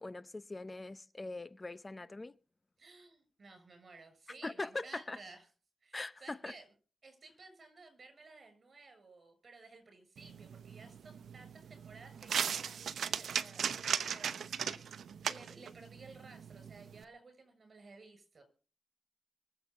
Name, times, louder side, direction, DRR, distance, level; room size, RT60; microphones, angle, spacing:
voice 1, 0.0-2.3 4.4-5.2 5.9-6.5, left 2 dB, 30° left, 0.6 m, -42 dB
voice 2, 2.8-5.5 5.8-6.7 7.0-15.0 15.2-18.4, right 3 dB, 55° right, 6.9 m, -56 dB
sound 1, 10.2-17.0, right 7 dB, 85° right, 0.9 m, -38 dB
24.0 x 8.1 x 5.5 m
cardioid pair, 70°, 0 cm